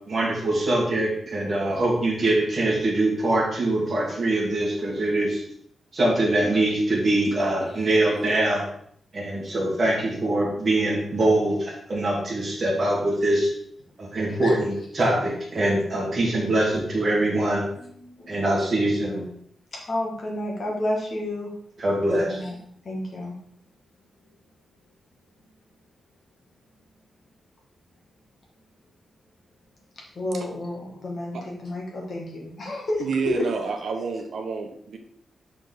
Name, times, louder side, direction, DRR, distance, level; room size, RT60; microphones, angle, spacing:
voice 1, 0.1-5.4 5.9-8.7 9.1-13.5 14.0-17.6 18.3-19.2 21.8-22.4, right 1 dB, 35° right, -3 dB, 2.1 m, -23 dB
voice 2, 7.6-7.9 9.3-9.5 14.3-14.5 17.8-18.4 19.7-21.5 22.1-22.6 22.8-23.3 30.1-33.4, left 1 dB, 40° left, -2 dB, 1.9 m, -31 dB
voice 3, 33.0-35.0, right 4 dB, 70° right, 4 dB, 1.0 m, -29 dB
6.1 x 4.9 x 3.9 m, 0.66 s
wide cardioid pair, 175°, 0 cm